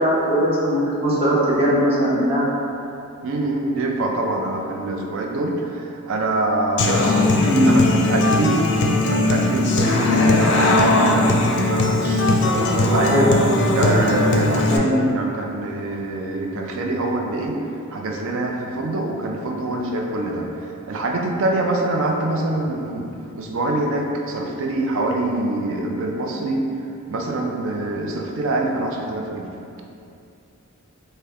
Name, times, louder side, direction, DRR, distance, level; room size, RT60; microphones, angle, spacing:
voice 1, 0.0-2.5 7.2-7.7 13.1-13.3 14.7-15.0, equal, 25° right, -8 dB, 0.9 m, -19 dB
voice 2, 3.2-7.3 7.7-8.6 9.1-11.4 11.7-13.2 13.7-17.6 17.9-26.7 27.1-29.5, right 2 dB, 60° right, 1 dB, 0.5 m, -25 dB
Human voice / Acoustic guitar, 6.8-14.8, left 2 dB, 55° left, 0.4 m, -18 dB
5.0 x 2.2 x 3.4 m, 2.6 s
head